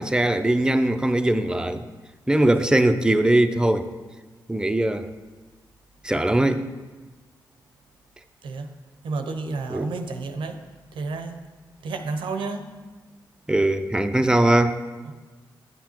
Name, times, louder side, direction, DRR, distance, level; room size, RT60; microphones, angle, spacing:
voice 1, 0.0-1.9 2.3-3.9 4.5-5.1 6.0-6.7 9.7-9.9 13.5-14.8, right 1 dB, 10° right, 8 dB, 0.5 m, -20 dB
voice 2, 9.0-10.6 10.9-11.4 11.8-12.7 15.0-15.1, right 3 dB, 85° right, 6 dB, 0.7 m, -30 dB
9.9 x 7.3 x 3.0 m, 1.3 s
supercardioid pair, 50°, 8 cm